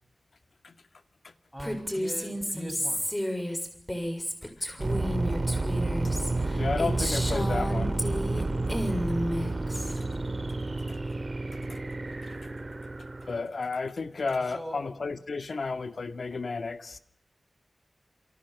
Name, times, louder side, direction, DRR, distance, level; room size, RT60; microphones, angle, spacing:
voice 1, 1.5-3.1 14.4-14.8, equal, 5° right, 7.4 m, -41 dB
Female speech woman speaking, 1.6-8.4 8.7-10.0, equal, 15° left, 6.8 m, -32 dB
voice 2, 4.4-4.9 6.5-8.0 8.4-8.5 9.7-10.1 10.9-11.0 11.6-11.8 12.2-12.4 13.0-17.0, left 4 dB, 75° left, 2.1 m, -33 dB
sound 1, 4.8-13.4, right 2 dB, 40° right, 4.5 m, -30 dB
29.5 x 29.0 x 6.1 m
wide cardioid pair, 80°, 0 cm